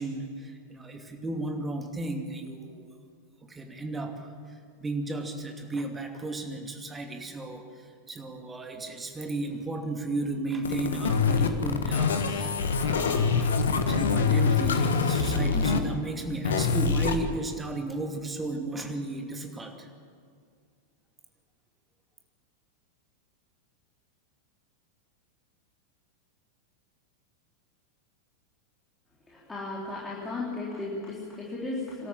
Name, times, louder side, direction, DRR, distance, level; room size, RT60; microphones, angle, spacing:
voice 1, 0.0-2.8 3.5-13.6 13.9-19.9, right 2 dB, 15° right, 4 dB, 2.6 m, -34 dB
sound 1, 10.6-15.8 16.4-17.1, left 5 dB, 65° left, 1.6 m, -25 dB
voice 2, 29.3-32.1, left 2 dB, 10° left, -5 dB, 3.8 m, -35 dB
25.0 x 13.0 x 8.8 m, 2.1 s
figure-of-eight pair, 90°, 0 cm